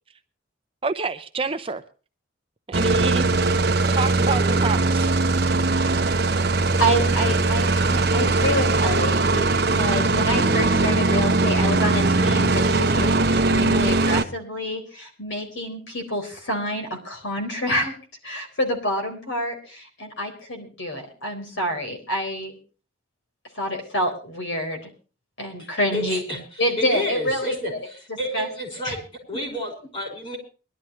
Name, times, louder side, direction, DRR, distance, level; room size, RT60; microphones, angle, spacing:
voice 1, 0.8-1.8 2.7-3.6 3.9-5.1, right 3 dB, 25° right, 8 dB, 0.6 m, -27 dB
sound 1, 2.7-14.2, right 3 dB, 50° right, 1.0 m, -20 dB
voice 2, 5.7-6.3 6.8-17.9 18.2-22.6 23.5-24.9 25.4-27.8 28.3-28.5 28.8-29.0, equal, 70° left, 4 dB, 4.1 m, -27 dB
voice 3, 25.6-26.4 26.8-29.0 29.3-30.4, equal, 30° left, 2 dB, 5.5 m, -30 dB
22.5 x 12.0 x 3.1 m, 0.36 s
head